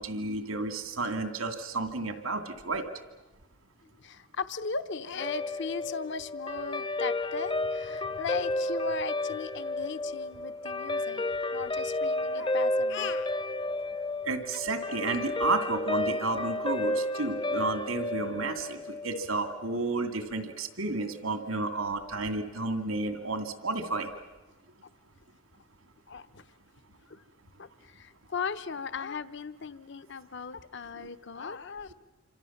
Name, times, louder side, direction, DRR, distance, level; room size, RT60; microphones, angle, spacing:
voice 1, 0.0-2.8 14.2-24.1 31.0-31.1, right 3 dB, 80° right, 8 dB, 2.5 m, -32 dB
voice 2, 4.0-11.2 11.5-13.3 14.5-14.7 26.1-26.4 27.1-27.2 27.6-31.9, left 5 dB, 55° left, 13 dB, 0.9 m, -37 dB
Guitar, 5.2-19.8, left 2 dB, 25° left, 0.8 m, -32 dB
27.5 x 26.0 x 7.3 m, 1.2 s
head